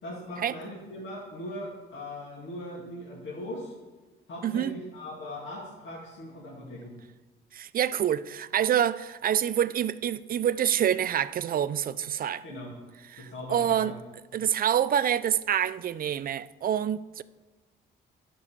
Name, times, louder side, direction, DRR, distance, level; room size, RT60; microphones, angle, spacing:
voice 1, 0.0-3.7 4.3-6.9 12.4-12.7 13.2-13.9, left 1 dB, 65° left, 2.2 m, -39 dB
voice 2, 4.4-4.8 7.5-12.4 13.1-13.9 14.3-17.2, right 10 dB, 45° right, 0.4 m, -27 dB
11.0 x 5.5 x 6.9 m
cardioid pair, 90°, 20 cm